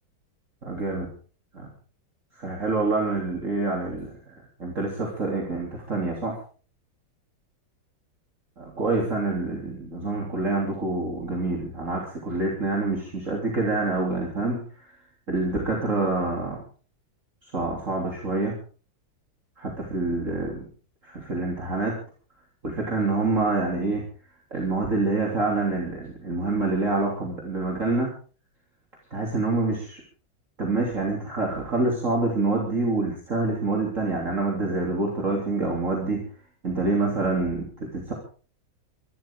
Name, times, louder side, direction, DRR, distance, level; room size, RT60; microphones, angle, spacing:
voice 1, 0.6-1.1 1.5-1.7 2.3-6.4 8.6-15.0 15.3-16.6 17.4-18.5 19.6-20.7 21.0-21.9 22.6-24.0 24.5-28.1 29.1-30.0 30.6-36.2 36.6-38.1, right 3 dB, 40° right, -1 dB, 3.7 m, -26 dB
24.0 x 13.5 x 3.8 m, 0.39 s
omnidirectional pair, 2.1 m